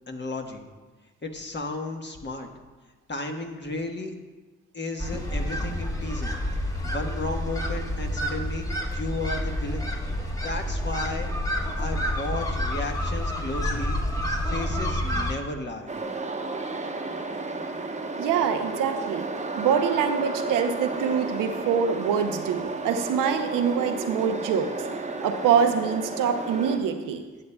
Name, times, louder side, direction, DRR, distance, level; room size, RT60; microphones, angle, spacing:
voice 1, 0.1-0.6 1.2-2.5 3.1-4.1 4.7-6.3 6.7-9.9 10.4-11.3 11.8-14.0 14.4-15.9, left 2 dB, 35° left, 3 dB, 1.2 m, -34 dB
sound 1, 5.0-15.4, equal, 10° left, 1.2 m, -29 dB
sound 2, 15.9-26.8, right 3 dB, 20° right, 1.0 m, -32 dB
voice 2, 18.2-19.3 19.6-24.7 25.2-27.2, right 7 dB, 85° right, 7 dB, 0.7 m, -25 dB
12.5 x 8.4 x 2.2 m, 1.3 s
supercardioid pair, 45°, 31 cm